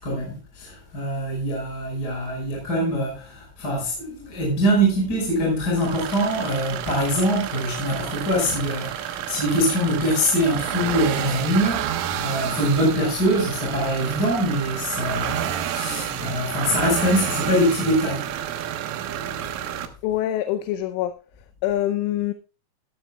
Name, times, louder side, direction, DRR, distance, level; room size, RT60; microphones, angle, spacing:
voice 1, 0.0-18.3, equal, 20° left, 5.5 m, -23 dB
sound 1, 5.8-19.9, right 10 dB, 80° right, 3.9 m, -30 dB
voice 2, 20.0-21.1 21.6-22.3, left 12 dB, 80° left, 3.2 m, -24 dB
15.5 x 13.5 x 2.3 m
omnidirectional pair, 5.7 m